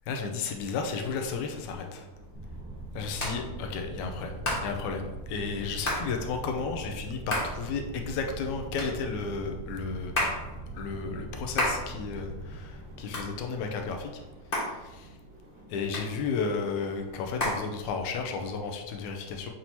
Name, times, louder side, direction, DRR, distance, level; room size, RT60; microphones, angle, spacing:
voice 1, 0.1-2.1 2.9-10.3 10.7-14.2 14.6-15.2 15.7-19.5, left 5 dB, 85° left, 4 dB, 2.0 m, -33 dB
sound 1, 0.9-18.6, right 1 dB, 75° right, 2.3 m, -52 dB
Hands, 1.7-18.3, left 1 dB, 50° left, 0.6 m, -36 dB
sound 2, 2.3-15.6, right 2 dB, 30° right, 1.2 m, -42 dB
7.7 x 4.4 x 2.8 m, 1.1 s
omnidirectional pair, 3.4 m